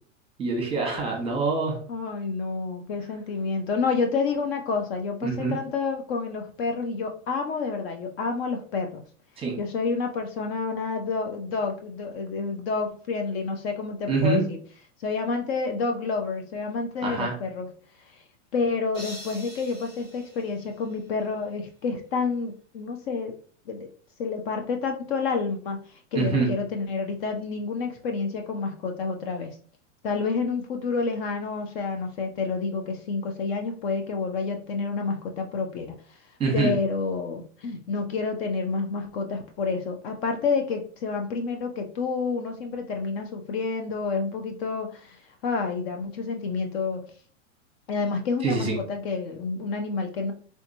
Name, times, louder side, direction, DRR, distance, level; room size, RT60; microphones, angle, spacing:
voice 1, 0.4-1.8 5.2-5.5 9.4-9.6 14.1-14.4 17.0-17.3 26.1-26.5 36.4-36.7 48.4-48.8, right 4 dB, 15° right, 0 dB, 0.9 m, -25 dB
voice 2, 1.9-9.0 9.6-14.6 15.0-17.7 18.0-18.2 18.5-23.3 23.7-23.9 24.2-29.6 30.0-36.2 36.5-47.0 47.9-50.3, left 4 dB, 55° left, 4 dB, 0.6 m, -29 dB
sound 1, 18.9-21.3, left 1 dB, 10° left, 0.4 m, -44 dB
3.5 x 2.8 x 2.6 m, 0.43 s
supercardioid pair, 145°, 38 cm